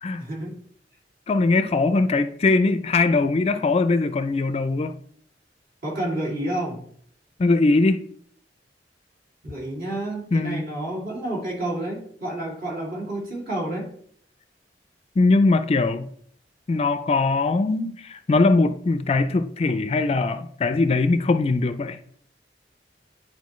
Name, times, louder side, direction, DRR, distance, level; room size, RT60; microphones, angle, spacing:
voice 1, 0.2-0.6 5.8-6.8 9.4-13.9, right 1 dB, 55° right, 2.6 m, -30 dB
voice 2, 1.3-5.0 7.4-8.0 10.3-10.6 15.2-16.1 16.7-22.0, left 3 dB, 35° left, 0.4 m, -21 dB
10.5 x 4.6 x 3.1 m
head